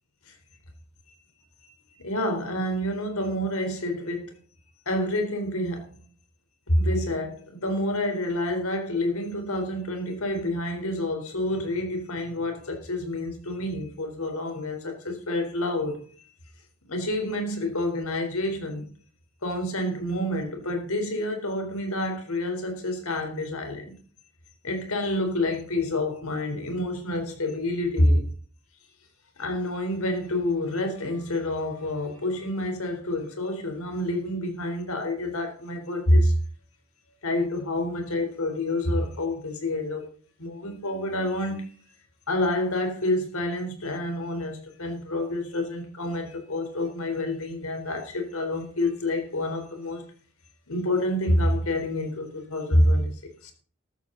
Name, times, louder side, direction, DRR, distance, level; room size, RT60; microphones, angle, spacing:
voice 1, 1.6-4.4 4.9-6.0 6.7-16.3 16.9-18.9 19.4-23.9 24.6-28.3 29.4-36.3 37.2-40.1 40.4-41.8 42.3-50.1 50.7-53.1 53.4-53.5, left 1 dB, 80° left, 4.0 m, -28 dB
13.5 x 13.5 x 4.0 m
head